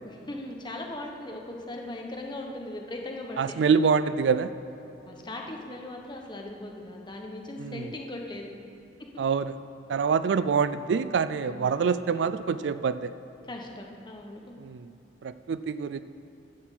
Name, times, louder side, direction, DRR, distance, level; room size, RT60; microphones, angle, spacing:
voice 1, 0.0-3.5 5.1-8.5 11.4-12.0 13.4-14.6, left 1 dB, 25° left, 1 dB, 1.1 m, -39 dB
voice 2, 3.4-4.5 7.6-7.9 9.2-9.5 9.9-13.1 14.6-14.9 15.2-16.0, right 6 dB, 75° right, 14 dB, 0.4 m, -25 dB
11.5 x 5.9 x 7.5 m, 2.9 s
head